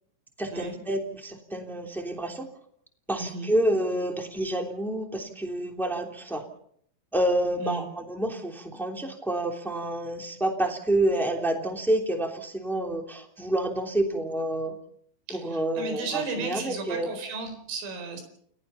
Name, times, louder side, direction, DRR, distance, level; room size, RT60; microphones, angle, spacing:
voice 1, 0.4-2.4 3.1-6.4 7.1-14.8 15.3-17.1, right 1 dB, ahead, 3 dB, 1.4 m, -28 dB
voice 2, 3.2-3.5 7.6-7.9 15.3-18.2, right 3 dB, 70° right, 7 dB, 6.8 m, -34 dB
30.0 x 18.5 x 5.8 m, 0.67 s
omnidirectional pair, 5.9 m